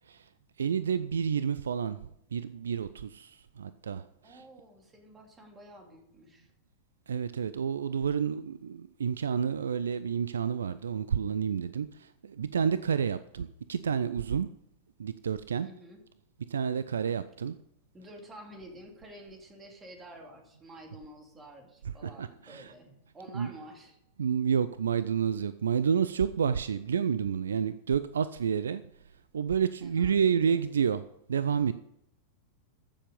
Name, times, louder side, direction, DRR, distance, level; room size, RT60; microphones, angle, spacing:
voice 1, 0.6-2.0 2.3-4.4 7.1-14.5 15.0-15.7 16.5-17.6 22.0-22.7 23.3-23.5 24.2-28.8 29.3-31.0 31.3-31.7, right 7 dB, 70° right, 0.4 m, -29 dB
voice 2, 4.2-6.5 15.6-16.0 17.9-24.0 29.8-30.6, right 1 dB, 20° right, 2.7 m, -50 dB
14.5 x 7.1 x 5.3 m
figure-of-eight pair, 90°, 0 cm